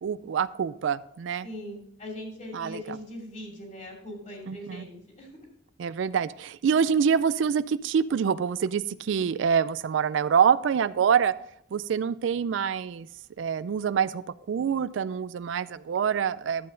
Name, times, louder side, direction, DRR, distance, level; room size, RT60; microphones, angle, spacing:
voice 1, 0.0-1.5 2.5-2.8 4.5-4.8 5.8-11.3 11.7-13.1 13.4-14.2 14.5-16.7, right 7 dB, 80° right, 17 dB, 0.4 m, -26 dB
voice 2, 1.4-5.4, left 1 dB, 40° left, 0 dB, 2.7 m, -40 dB
11.5 x 7.6 x 3.8 m, 0.73 s
head